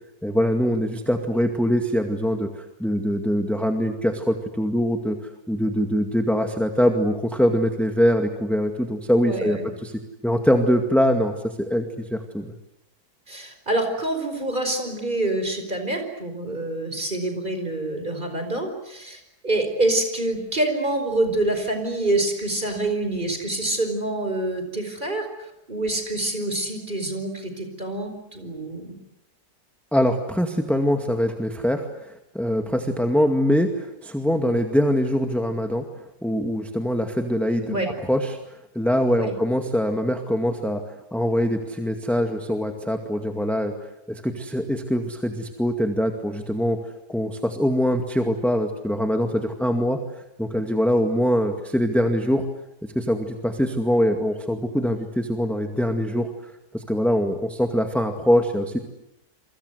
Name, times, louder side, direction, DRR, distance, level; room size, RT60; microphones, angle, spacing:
voice 1, 0.2-5.2 5.5-9.9 10.2-12.5 29.9-35.8 36.2-37.8 38.1-38.4 38.8-43.7 44.1-46.8 47.1-50.0 50.4-52.5 52.8-56.3 56.7-58.8, equal, ahead, 4 dB, 2.0 m, -23 dB
voice 2, 9.2-9.7 13.3-28.9 37.6-37.9 39.1-39.4, right 2 dB, 30° right, 6 dB, 5.2 m, -26 dB
28.5 x 24.5 x 8.1 m, 0.83 s
omnidirectional pair, 1.6 m